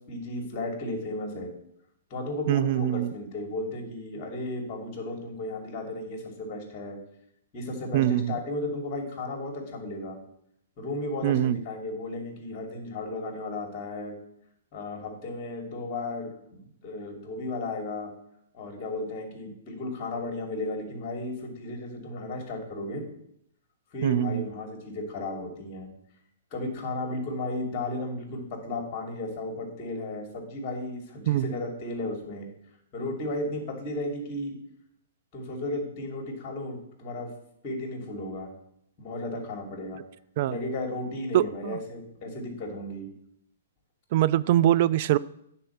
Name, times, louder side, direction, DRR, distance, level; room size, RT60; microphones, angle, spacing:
voice 1, 0.1-1.5 2.1-7.0 7.5-10.2 10.8-14.2 14.7-18.1 18.5-23.0 23.9-25.9 26.5-32.5 32.9-34.6 35.3-37.3 37.6-38.5 39.0-40.0 40.5-43.1, left 2 dB, 35° left, 2.7 m, -34 dB
voice 2, 2.5-3.1 7.9-8.4 11.2-11.6 24.0-24.5 31.3-31.5 40.4-40.6 41.3-41.8 44.1-45.2, right 12 dB, 50° right, 0.4 m, -23 dB
9.2 x 4.3 x 7.1 m
hypercardioid pair, 135°, 0 cm